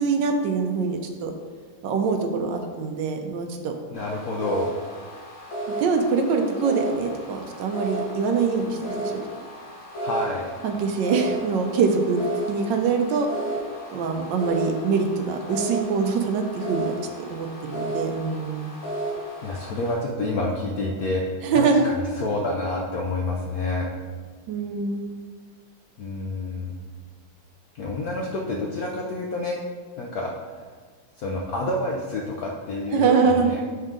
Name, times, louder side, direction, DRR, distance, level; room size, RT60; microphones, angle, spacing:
voice 1, 0.0-1.3 1.8-3.7 5.7-9.2 10.6-12.2 12.5-13.3 13.9-17.0 17.3-18.7 21.4-21.8 24.5-25.1 32.9-33.5, right 5 dB, 70° right, 4 dB, 1.2 m, -24 dB
voice 2, 3.9-4.7 10.0-10.5 19.4-23.9 26.0-26.7 27.7-29.6 30.0-30.3 31.2-33.6, left 2 dB, 85° left, -1 dB, 0.8 m, -28 dB
sound 1, 3.9-19.9, right 1 dB, 40° left, 1.8 m, -33 dB
5.9 x 5.4 x 3.8 m, 1.5 s
omnidirectional pair, 2.4 m